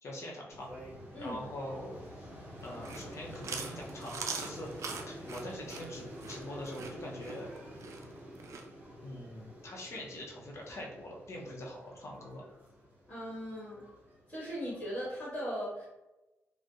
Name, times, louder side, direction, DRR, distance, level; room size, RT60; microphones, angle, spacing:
voice 1, 0.0-0.7 1.2-2.3 2.6-4.7 5.1-7.5 9.0-12.4, left 1 dB, 60° left, -2 dB, 0.7 m, -43 dB
sound 1, 0.5-15.1, equal, 25° right, 1.1 m, -48 dB
Chewing mastication, 2.6-8.7, right 5 dB, 65° right, 0.3 m, -42 dB
voice 2, 13.1-13.8 14.3-15.9, equal, 25° left, -7 dB, 1.4 m, -38 dB
2.5 x 2.1 x 2.4 m, 1.0 s
cardioid pair, 65°, 5 cm